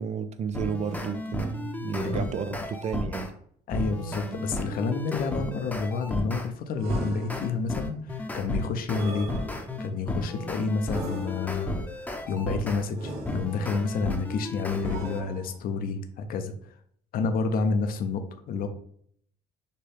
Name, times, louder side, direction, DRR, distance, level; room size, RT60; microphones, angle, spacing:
voice 1, 0.0-3.3, right 6 dB, 40° right, 11 dB, 0.4 m, -32 dB
sound 1, 0.5-3.3 3.7-6.5 6.9-12.8 13.2-15.2, left 1 dB, 10° left, 0.7 m, -33 dB
voice 2, 3.7-9.3 9.8-16.7 17.1-18.7, left 4 dB, 60° left, 7 dB, 0.6 m, -29 dB
sound 2, 6.8-7.8 8.9-10.0 10.9-11.8 12.9-13.9 14.8-15.8, right 2 dB, 70° right, 1.0 m, -39 dB
6.6 x 2.3 x 3.4 m, 0.63 s
cardioid pair, 110°, 17 cm